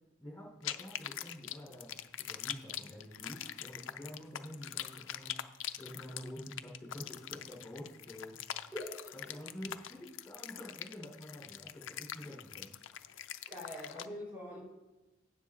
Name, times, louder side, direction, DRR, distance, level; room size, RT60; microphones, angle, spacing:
voice 1, 0.2-5.4 5.8-8.4 9.1-12.9, equal, 10° left, -5 dB, 3.7 m, -48 dB
sound 1, 0.6-14.1, left 11 dB, 75° left, 0.5 m, -43 dB
voice 2, 8.7-9.1 13.5-14.6, left 1 dB, 10° right, -5 dB, 3.8 m, -43 dB
17.0 x 7.3 x 2.5 m, 1.0 s
head